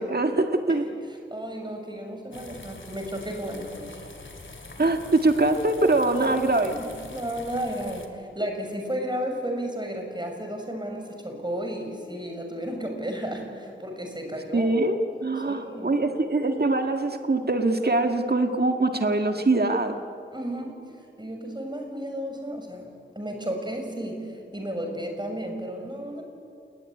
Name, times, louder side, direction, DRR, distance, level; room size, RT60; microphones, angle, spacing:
voice 1, 0.0-0.9 4.8-6.8 14.5-20.0, right 2 dB, 55° right, 5 dB, 1.8 m, -23 dB
voice 2, 1.1-3.9 6.2-14.7 15.5-16.0 20.3-20.7 21.2-22.9 23.1-24.2 24.5-26.2, equal, 25° right, 3 dB, 6.3 m, -33 dB
sound 1, 2.3-8.1, left 3 dB, 85° left, 2.8 m, -44 dB
28.5 x 20.5 x 9.8 m, 2.5 s
wide cardioid pair, 55°, 20 cm